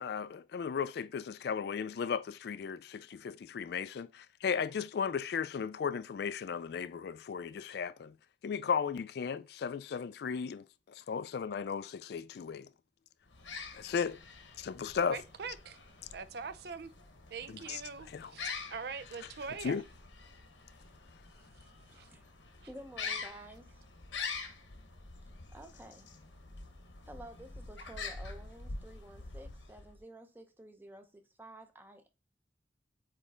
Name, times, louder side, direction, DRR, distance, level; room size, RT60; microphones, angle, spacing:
voice 1, 0.0-8.1 8.4-12.7 13.7-14.2 14.6-15.2 17.7-17.8 18.1-18.3 19.6-19.8, left 6 dB, 60° left, 0.3 m, -35 dB
sound 1, 13.3-30.0, left 4 dB, 85° left, 1.1 m, -46 dB
voice 2, 15.1-15.8 16.1-16.9 17.3-19.8 21.9-22.1, right 5 dB, 60° right, 0.5 m, -43 dB
voice 3, 21.8-22.3 22.7-23.8 24.4-24.5 25.5-26.1 27.0-32.1, right 1 dB, 10° right, 0.7 m, -51 dB
8.1 x 3.2 x 3.6 m
head